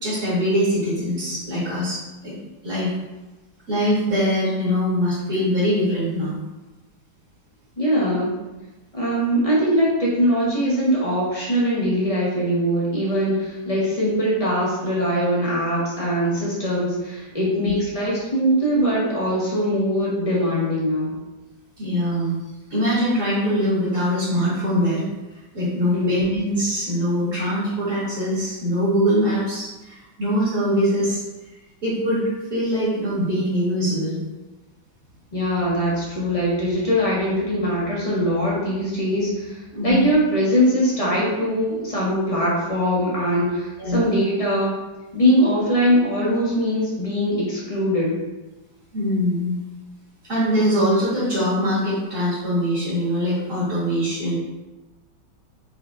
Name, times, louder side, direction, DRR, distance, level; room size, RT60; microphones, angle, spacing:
voice 1, 0.0-2.3 2.6-2.9 3.7-6.3 17.6-17.7 21.8-22.4 22.7-25.0 25.5-31.2 31.8-34.2 39.7-40.1 43.8-44.0 48.9-49.6 50.3-54.3, equal, 45° right, -10 dB, 1.8 m, -22 dB
voice 2, 7.8-8.3 8.9-21.2 25.9-26.1 35.3-44.7 45.1-48.2, equal, 30° left, -6 dB, 0.7 m, -21 dB
5.7 x 2.8 x 2.4 m, 1.1 s
omnidirectional pair, 2.0 m